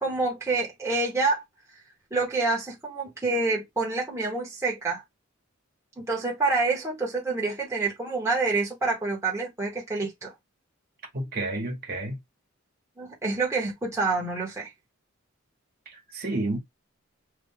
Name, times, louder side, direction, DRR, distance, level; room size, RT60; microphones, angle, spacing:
voice 1, 0.0-1.4 2.1-5.0 6.0-10.3 13.0-14.7, right 3 dB, 15° right, 1.1 m, -27 dB
voice 2, 11.1-12.2 15.8-16.6, right 2 dB, 45° right, 1.3 m, -30 dB
3.3 x 2.4 x 3.6 m
head